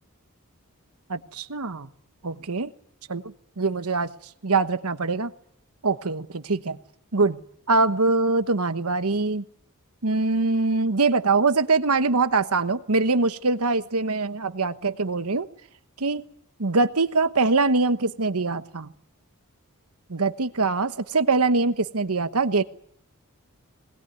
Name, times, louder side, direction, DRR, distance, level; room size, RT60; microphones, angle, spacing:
voice 1, 1.1-1.9 2.2-2.7 3.1-3.2 3.6-4.1 4.4-5.3 5.8-6.8 7.1-7.4 7.7-9.4 10.0-15.5 16.0-16.3 16.6-18.9 20.1-22.6, right 3 dB, 80° right, 11 dB, 1.2 m, -23 dB
21.0 x 20.0 x 9.4 m, 0.68 s
head